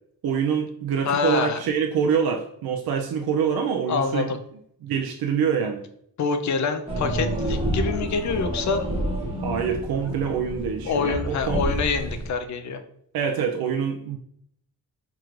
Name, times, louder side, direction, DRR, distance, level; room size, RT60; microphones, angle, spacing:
voice 1, 0.2-4.3 4.8-5.8 9.4-11.6 13.1-14.2, right 7 dB, 75° right, 2 dB, 0.5 m, -25 dB
voice 2, 1.0-1.6 3.9-4.4 6.2-8.9 10.9-12.8, left 5 dB, 50° left, 8 dB, 0.5 m, -26 dB
sound 1, 6.9-12.3, right 1 dB, 15° right, 1.2 m, -29 dB
4.7 x 3.0 x 2.4 m, 0.69 s
wide cardioid pair, 120°, 37 cm